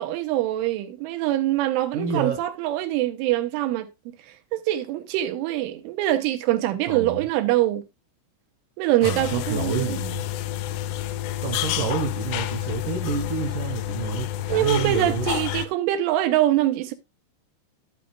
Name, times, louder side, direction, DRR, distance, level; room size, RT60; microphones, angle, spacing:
voice 1, 0.0-3.9 4.2-7.8 8.8-10.0 14.5-16.9, right 14 dB, 90° right, 3.4 m, -24 dB
voice 2, 1.9-2.4 6.9-7.2 9.0-10.2 11.4-15.3, right 6 dB, 60° right, 2.3 m, -29 dB
sound 1, 9.0-15.7, left 13 dB, 85° left, 2.5 m, -29 dB
11.5 x 9.1 x 2.4 m
omnidirectional pair, 5.5 m